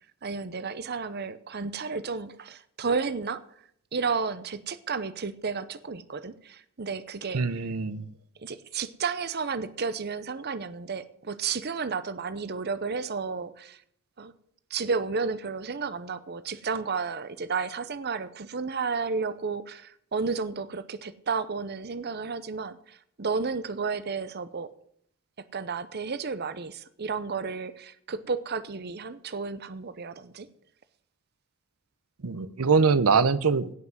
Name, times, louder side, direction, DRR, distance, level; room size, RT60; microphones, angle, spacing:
voice 1, 0.2-3.4 3.9-7.7 8.4-13.8 14.2-14.3 14.7-24.7 25.5-30.5, right 5 dB, 50° right, 14 dB, 0.7 m, -32 dB
voice 2, 7.3-8.0 32.2-33.7, right 5 dB, 90° right, 15 dB, 0.7 m, -23 dB
17.0 x 5.9 x 7.8 m, 0.67 s
head